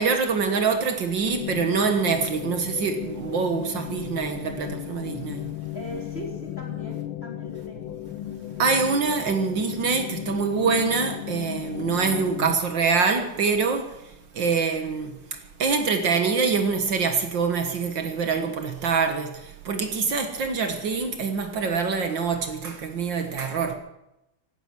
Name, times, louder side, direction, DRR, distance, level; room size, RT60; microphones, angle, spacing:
voice 1, 0.0-5.4 8.6-13.9 14.4-15.1 15.6-19.3 19.7-23.8, right 5 dB, 65° right, 2.0 m, -25 dB
sound 1, 1.3-12.6, left 13 dB, 75° left, 1.4 m, -35 dB
voice 2, 5.7-8.0, left 1 dB, 30° left, 3.7 m, -39 dB
16.0 x 13.0 x 6.1 m
omnidirectional pair, 2.3 m